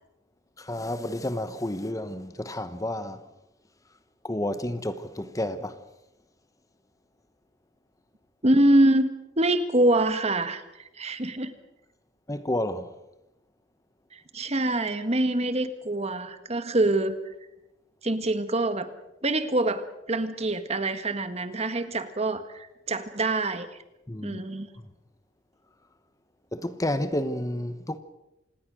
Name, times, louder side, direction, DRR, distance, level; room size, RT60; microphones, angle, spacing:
voice 1, 0.6-3.2 4.2-5.8 12.3-12.9 24.1-24.4 26.5-28.0, left 1 dB, 20° left, 1.1 m, -30 dB
voice 2, 8.4-9.1 9.4-10.6 11.0-11.5 14.1-17.1 18.0-18.9 19.2-23.7 24.2-24.7, right 1 dB, 35° right, 1.6 m, -25 dB
27.0 x 19.5 x 6.3 m
head